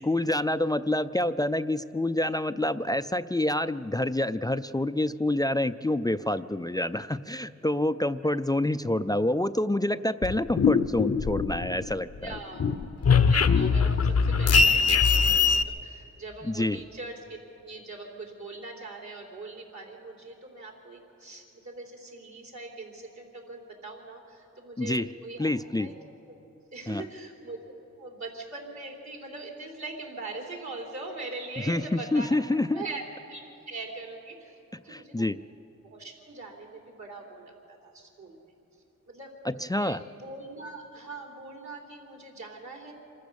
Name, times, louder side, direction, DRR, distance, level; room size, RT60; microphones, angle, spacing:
voice 1, 0.0-12.4 16.4-16.8 24.8-25.1 25.4-25.9 26.9-27.0 31.6-32.8 34.7-35.4 39.4-40.0, left 1 dB, 15° left, 13 dB, 0.4 m, -27 dB
sound 1, 10.2-11.9 12.2-15.6, left 5 dB, 50° left, 0.7 m, -22 dB
voice 2, 12.2-12.7 13.1-17.4 17.6-25.5 25.8-25.9 26.3-26.4 26.7-27.6 28.0-32.4 32.7-33.4 33.7-35.3 35.8-38.4 39.1-42.9, right 3 dB, 65° right, 0 dB, 3.8 m, -42 dB
26.0 x 14.0 x 7.0 m, 2.9 s
wide cardioid pair, 65°, 31 cm